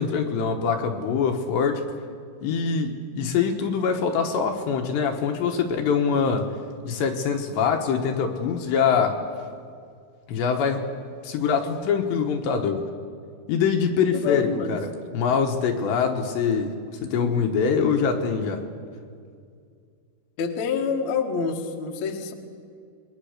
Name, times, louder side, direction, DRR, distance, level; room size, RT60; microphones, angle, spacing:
voice 1, 0.0-1.8 2.4-6.5 6.8-9.2 10.3-10.9 11.2-12.8 13.5-16.7 17.0-18.6, left 6 dB, 70° left, 4 dB, 3.3 m, -24 dB
voice 2, 14.1-14.7 20.4-22.3, left 6 dB, 50° left, 2 dB, 2.3 m, -27 dB
27.5 x 22.0 x 6.6 m, 2.2 s
omnidirectional pair, 5.5 m